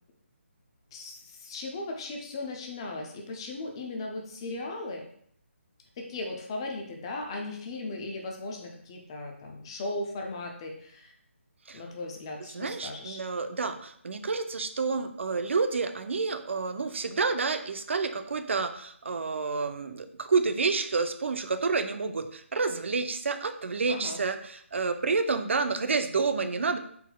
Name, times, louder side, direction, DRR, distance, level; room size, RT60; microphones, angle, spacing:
voice 1, 0.9-5.0 6.0-11.1 11.7-13.2 23.9-24.2, left 2 dB, 20° left, 1 dB, 0.5 m, -37 dB
voice 2, 12.5-26.8, right 4 dB, 65° right, 8 dB, 0.5 m, -29 dB
4.1 x 4.0 x 2.2 m, 0.65 s
hypercardioid pair, 165°, 7 cm